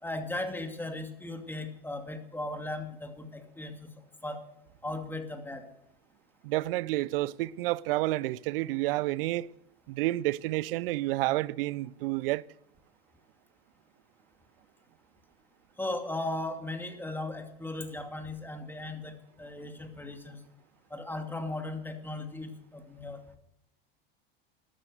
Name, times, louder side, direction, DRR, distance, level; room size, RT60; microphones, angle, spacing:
voice 1, 0.0-3.9 4.2-4.4 4.8-5.6 15.8-20.4 20.9-23.2, left 2 dB, 5° left, 2.5 m, -37 dB
voice 2, 6.4-9.5 9.9-12.4, right 18 dB, 65° right, 0.6 m, -30 dB
13.0 x 13.0 x 6.6 m
hypercardioid pair, 95°, 30 cm